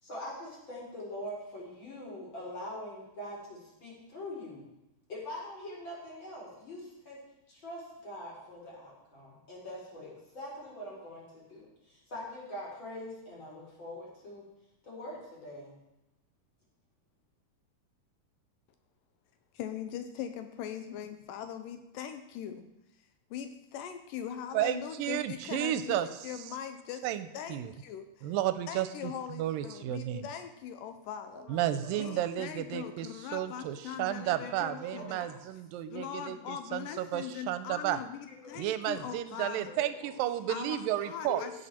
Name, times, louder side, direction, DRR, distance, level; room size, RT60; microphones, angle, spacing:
voice 1, 0.0-4.6 5.1-7.2 7.5-14.4 14.8-15.8 31.3-32.2 32.7-35.3 35.9-36.0 38.3-38.6 38.9-39.2 39.7-40.1 41.3-41.5, left 1 dB, 35° left, -5 dB, 4.0 m, -44 dB
voice 2, 19.5-22.7 23.3-27.1 27.3-28.3 28.7-31.5 31.9-35.3 35.9-39.7 40.5-41.5, left 9 dB, 80° left, 8 dB, 2.2 m, -41 dB
voice 3, 24.5-26.1 27.0-27.7 28.2-29.1 29.4-30.2 31.5-38.0 38.6-41.4, right 12 dB, 85° right, 12 dB, 2.3 m, -32 dB
16.5 x 6.6 x 4.3 m, 0.90 s
omnidirectional pair, 4.0 m